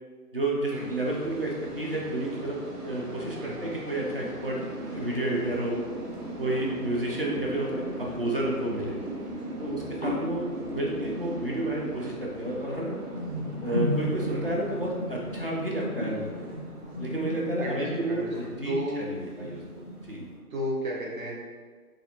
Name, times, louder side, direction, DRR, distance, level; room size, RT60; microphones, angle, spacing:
voice 1, 0.3-5.8 6.4-9.0 9.6-13.0 13.6-16.5 17.0-19.6 20.1-20.3, right 1 dB, 40° right, -3 dB, 0.4 m, -31 dB
sound 1, 0.7-20.3, right 1 dB, 85° right, 0.7 m, -40 dB
voice 2, 3.4-3.8 14.3-14.5 17.6-19.1 20.5-21.4, equal, 60° right, -4 dB, 0.9 m, -33 dB
sound 2, 4.4-20.4, left 1 dB, 30° left, 0.5 m, -38 dB
3.0 x 2.5 x 2.8 m, 1.5 s
figure-of-eight pair, 155°, 46 cm